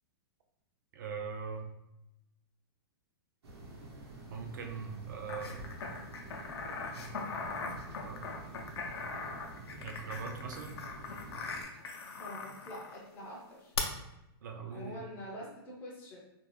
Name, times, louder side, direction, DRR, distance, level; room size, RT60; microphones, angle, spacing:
voice 1, 0.9-1.7 4.3-5.6 7.0-7.6 8.0-8.3 9.8-10.8 14.4-15.0, right 5 dB, 50° right, 3 dB, 0.4 m, -42 dB
sound 1, 3.4-11.6, right 2 dB, 80° right, 0.9 m, -48 dB
sound 2, 5.3-13.0 13.8-13.9, left 5 dB, 85° left, 0.5 m, -40 dB
voice 2, 12.2-13.7 14.7-16.2, equal, 15° left, -3 dB, 0.4 m, -45 dB
2.5 x 2.2 x 3.2 m, 0.89 s
hypercardioid pair, 170°, 13 cm